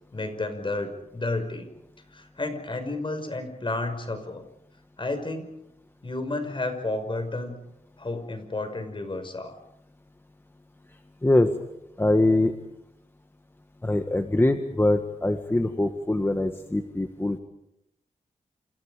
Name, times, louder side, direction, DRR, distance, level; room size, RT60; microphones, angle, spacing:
voice 1, 0.1-1.7 2.1-4.4 5.0-5.5 6.0-7.6 8.0-9.6, left 2 dB, 40° left, 7 dB, 5.7 m, -31 dB
voice 2, 12.0-12.5 13.8-17.4, left 1 dB, 15° left, 6 dB, 1.7 m, -23 dB
28.5 x 28.5 x 5.1 m, 0.82 s
wide cardioid pair, 85°, 14 cm